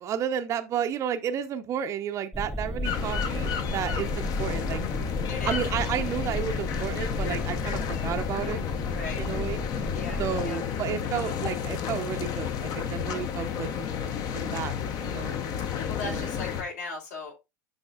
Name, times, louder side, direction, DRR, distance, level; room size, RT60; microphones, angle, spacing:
voice 1, 0.0-4.8 5.5-8.6 9.2-9.6 10.2-13.7 14.0-14.7 15.0-15.4 16.0-16.2, right 9 dB, 30° right, 0.7 m, -32 dB
sound 1, 2.3-10.5, left 1 dB, ahead, 0.4 m, -34 dB
sound 2, 2.8-16.6, left 8 dB, 40° left, 1.0 m, -31 dB
voice 2, 5.3-5.6 8.9-9.2 9.9-10.6 12.9-13.2 15.6-17.3, left 4 dB, 60° left, 3.2 m, -38 dB
11.5 x 4.1 x 2.4 m
figure-of-eight pair, 85°, 9 cm